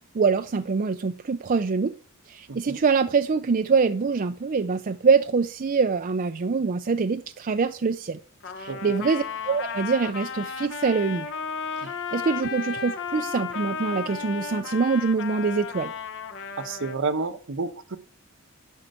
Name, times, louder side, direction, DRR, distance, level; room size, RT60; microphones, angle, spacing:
voice 1, 0.1-1.9 2.3-8.2 8.6-11.3 11.8-15.9, right 5 dB, 40° right, 0.5 m, -24 dB
voice 2, 2.5-2.8 8.7-9.0 11.8-11.9 16.6-18.0, right 4 dB, 65° right, 1.0 m, -30 dB
Trumpet, 8.4-17.0, left 6 dB, 60° left, 1.2 m, -34 dB
12.0 x 4.7 x 8.1 m
head